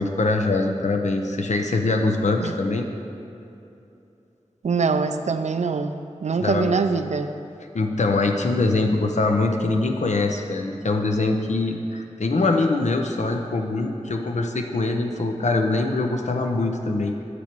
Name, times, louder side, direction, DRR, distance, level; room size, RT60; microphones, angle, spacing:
voice 1, 0.0-2.9 6.4-6.8 7.7-17.2, left 3 dB, 80° left, 4 dB, 0.7 m, -23 dB
voice 2, 4.6-5.9 6.2-7.3, right 5 dB, 75° right, 9 dB, 0.4 m, -23 dB
8.4 x 6.2 x 4.4 m, 2.8 s
wide cardioid pair, 60°, 12 cm